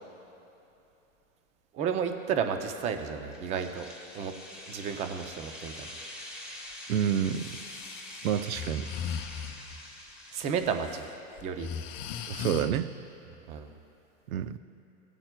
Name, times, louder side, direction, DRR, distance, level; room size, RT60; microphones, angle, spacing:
voice 1, 1.7-3.9 4.1-4.3 4.7-5.9 10.3-11.1 11.4-11.7 13.5-13.7, right 7 dB, 20° right, 7 dB, 0.4 m, -32 dB
sound 1, 3.3-11.2, left 1 dB, ahead, 1.4 m, -45 dB
voice 2, 6.9-7.6 8.2-8.9 12.3-12.9 14.3-14.6, right 9 dB, 85° right, 13 dB, 0.6 m, -28 dB
Breathing, 7.3-9.8 10.6-11.0 11.4-12.7, left 7 dB, 35° left, 0.6 m, -38 dB
17.5 x 8.7 x 2.2 m, 2.9 s
supercardioid pair, 135°, 41 cm